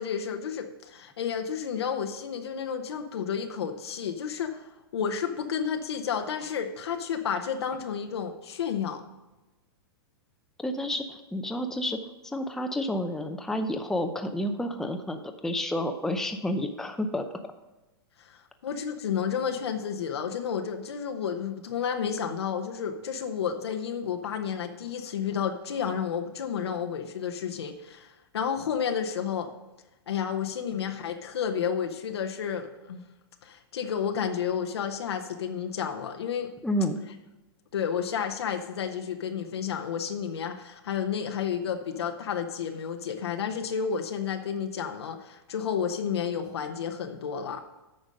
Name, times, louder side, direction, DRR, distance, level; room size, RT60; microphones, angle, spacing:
voice 1, 0.0-9.0 18.2-29.5 30.1-33.1 33.4-36.5 37.7-47.6, left 7 dB, 85° left, 5 dB, 0.8 m, -31 dB
voice 2, 10.6-12.0 12.2-17.3 36.6-37.0, left 1 dB, 5° left, 6 dB, 0.6 m, -30 dB
8.7 x 5.2 x 5.2 m, 1.1 s
hypercardioid pair, 125°, 13 cm